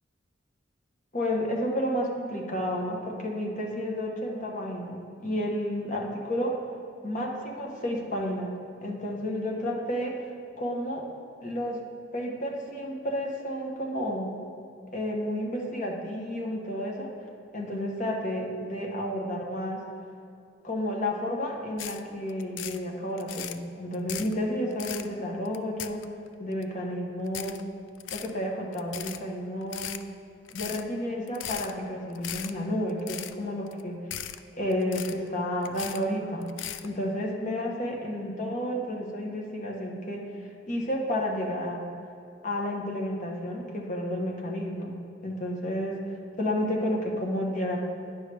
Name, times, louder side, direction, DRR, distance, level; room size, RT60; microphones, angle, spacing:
voice 1, 1.1-6.6 7.0-8.6 8.8-10.2 10.6-11.1 11.4-11.8 12.1-14.4 14.9-17.1 17.5-19.8 20.6-26.0 26.4-27.6 28.1-29.9 30.5-34.0 34.5-36.5 36.8-40.2 40.7-41.8 42.4-44.9 45.2-46.0 46.4-47.8, equal, 45° left, -1 dB, 1.1 m, -31 dB
sound 1, 21.8-22.0 22.3-22.8 23.2-23.6 23.9-24.3 24.7-25.1 25.5-26.3 26.6-26.7 27.3-27.6 28.0-28.3 28.7-29.2 29.6-30.0 30.5-30.8 31.3-31.7 32.1-32.5 32.9-33.3 33.7-33.8 34.1-34.4 34.7-35.3 35.7-36.0 36.4-36.9, left 11 dB, 80° left, 0.3 m, -37 dB
9.8 x 5.6 x 3.3 m, 2.5 s
head